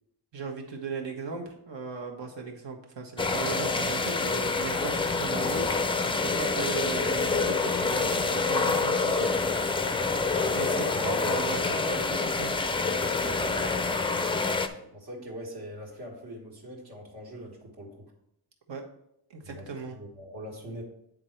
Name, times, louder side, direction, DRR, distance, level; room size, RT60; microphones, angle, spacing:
voice 1, 0.3-9.4 10.5-12.5 18.7-18.8 19.3-20.0, right 5 dB, 75° right, 2 dB, 1.5 m, -37 dB
sound 1, 3.2-14.7, left 4 dB, 15° left, 0.3 m, -27 dB
voice 2, 13.2-13.9 14.7-18.1 19.4-20.8, equal, 60° right, -2 dB, 1.7 m, -43 dB
9.4 x 3.9 x 4.5 m, 0.75 s
wide cardioid pair, 165°, 43 cm